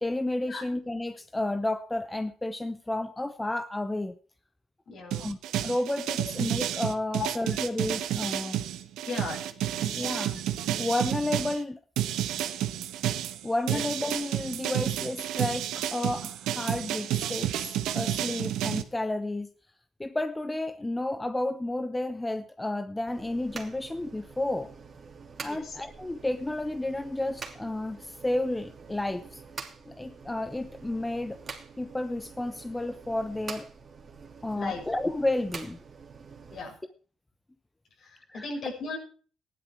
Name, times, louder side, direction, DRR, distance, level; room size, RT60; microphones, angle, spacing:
voice 1, 0.0-4.2 5.2-8.6 9.9-10.4 10.8-11.8 13.4-19.5 20.0-24.7 25.4-29.4 29.9-31.4 31.8-33.7 34.4-35.8 38.3-38.5, left 1 dB, 15° left, 11 dB, 0.9 m, -31 dB
voice 2, 4.9-5.3 7.1-7.3 9.1-9.4 9.8-10.0 13.7-13.8 14.6-14.7 25.5-25.7 34.5-34.8 36.5-36.7 38.0-39.0, left 4 dB, 60° left, 2 dB, 6.2 m, -36 dB
sound 1, 5.1-11.6 12.0-18.8, right 12 dB, 85° right, 1.3 m, -30 dB
sound 2, 23.1-36.6, right 5 dB, 40° right, 2.9 m, -46 dB
15.0 x 11.0 x 4.6 m, 0.41 s
cardioid pair, 90°, 0 cm